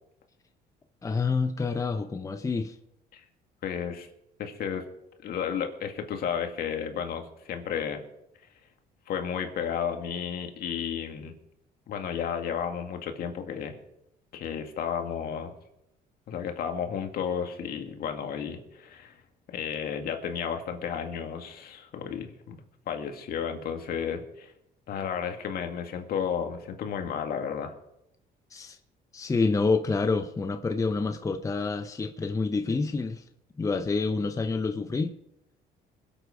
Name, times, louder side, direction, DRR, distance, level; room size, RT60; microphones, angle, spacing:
voice 1, 1.0-2.7 28.5-28.8 29.1-33.2 33.6-35.2, left 4 dB, 20° left, 0.8 m, -28 dB
voice 2, 3.6-4.1 4.4-4.8 5.2-8.0 9.1-11.3 11.9-13.8 14.3-15.5 16.3-19.2 19.5-22.6 22.9-24.5 24.9-27.7, left 7 dB, 65° left, 2.0 m, -32 dB
21.5 x 8.1 x 5.0 m
cardioid pair, 110°, 17 cm